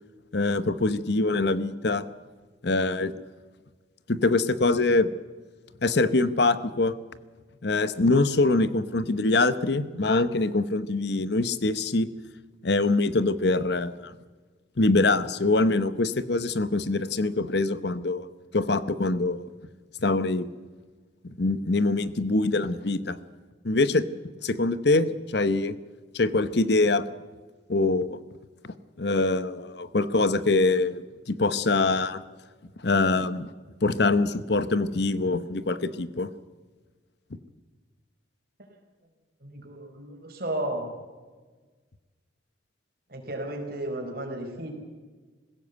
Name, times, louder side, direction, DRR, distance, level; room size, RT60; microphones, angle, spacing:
voice 1, 0.3-2.0 2.6-3.1 4.1-5.1 5.8-7.0 7.6-12.1 12.6-14.1 14.8-18.3 18.5-19.4 20.0-20.5 21.4-23.2 23.6-24.1 24.4-25.8 26.1-27.0 27.7-28.2 29.0-32.2 32.8-33.5 33.8-36.3, left 2 dB, 60° left, 14 dB, 0.9 m, -24 dB
voice 2, 39.4-40.9 43.1-44.7, right 1 dB, 50° right, 3 dB, 4.5 m, -33 dB
20.5 x 16.5 x 8.1 m, 1.4 s
head